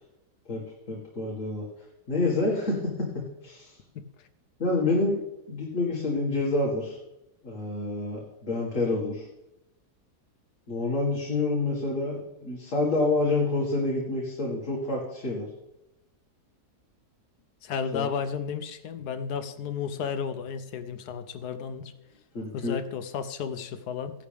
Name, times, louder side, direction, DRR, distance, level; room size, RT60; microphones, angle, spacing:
voice 1, 0.9-1.6 2.1-3.8 4.6-7.0 7.4-9.3 10.7-15.5 17.9-18.1 22.3-22.8, left 2 dB, 50° left, -3 dB, 2.3 m, -28 dB
voice 2, 17.6-21.9 22.5-24.1, left 6 dB, 75° left, 10 dB, 1.3 m, -33 dB
15.5 x 11.5 x 3.5 m, 0.90 s
omnidirectional pair, 1.7 m